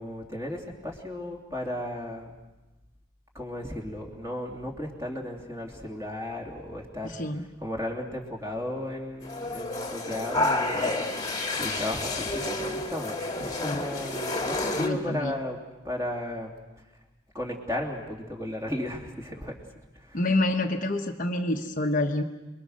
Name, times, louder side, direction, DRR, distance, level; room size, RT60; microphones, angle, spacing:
voice 1, 0.0-2.3 3.3-7.1 7.6-10.9 11.2-15.6 15.8-16.5 17.3-19.5 19.9-20.4, left 1 dB, 15° right, 0 dB, 3.0 m, -35 dB
voice 2, 7.0-7.4 13.6-13.8 14.8-15.3 20.1-22.2, left 1 dB, 40° left, 3 dB, 1.2 m, -27 dB
sound 1, 9.2-14.9, left 2 dB, 20° left, 2.0 m, -30 dB
28.5 x 22.0 x 6.5 m, 1.1 s
head